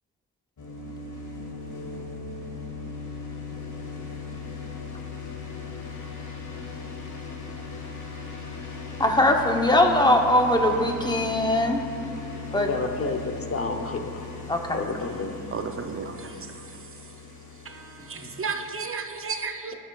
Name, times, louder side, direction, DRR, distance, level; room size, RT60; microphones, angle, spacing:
sound 1, 0.6-18.8, left 4 dB, 55° left, 1.2 m, -38 dB
voice 1, 9.0-11.8 12.5-12.7 14.5-14.8 18.2-18.3, left 1 dB, 10° left, 0.9 m, -21 dB
voice 2, 12.5-14.3 14.7-15.4, left 3 dB, 40° left, 0.8 m, -30 dB
voice 3, 15.5-17.1 17.6-19.7, right 5 dB, 35° right, 0.6 m, -34 dB
17.5 x 6.5 x 2.4 m
cardioid pair, 85°, 36 cm